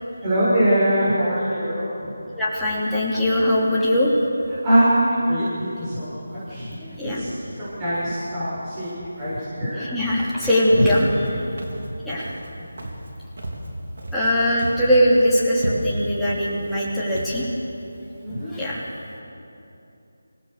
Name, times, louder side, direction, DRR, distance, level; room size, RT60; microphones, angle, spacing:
voice 1, 0.2-2.1 4.6-6.8 7.1-9.9 10.7-10.9 12.1-12.2 18.2-18.5, equal, 15° right, -12 dB, 7.0 m, -23 dB
voice 2, 2.3-4.1 6.8-7.2 9.9-11.0 12.1-12.3 14.1-17.4 18.5-18.9, equal, ahead, -10 dB, 3.1 m, -21 dB
Walk footsteps, 11.0-11.3 11.6-11.9 12.2-12.5 12.8-13.1 13.4-14.3 14.6-14.9 15.2-15.3 15.6-16.1 16.6-16.8 17.1-17.4, right 1 dB, 70° right, 4.1 m, -33 dB
26.0 x 17.0 x 6.8 m, 2.9 s
figure-of-eight pair, 165°, 0 cm